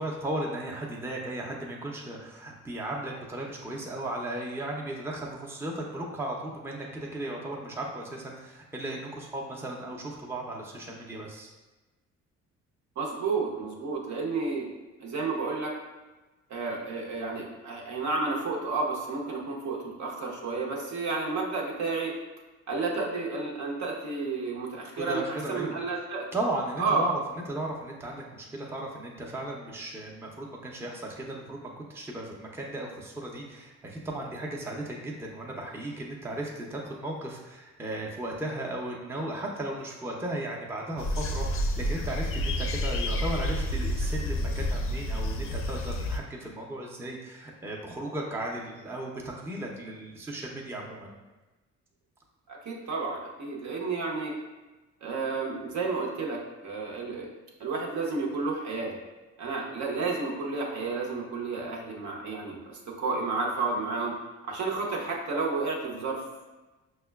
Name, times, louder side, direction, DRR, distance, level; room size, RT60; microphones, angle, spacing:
voice 1, 0.0-6.9 7.1-11.5 25.0-25.8 26.3-49.1 49.4-51.1, right 1 dB, 10° right, -1 dB, 0.5 m, -36 dB
voice 2, 13.0-14.7 15.0-15.7 16.5-22.1 22.7-25.2 25.5-26.3 26.8-27.1 52.5-54.3 55.0-57.3 57.6-59.0 59.4-64.1 64.4-66.2, right 3 dB, 70° right, -1 dB, 0.8 m, -31 dB
sound 1, 41.0-46.2, left 1 dB, 45° left, 0.4 m, -29 dB
5.3 x 2.2 x 2.2 m, 1.1 s
cardioid pair, 90°, 30 cm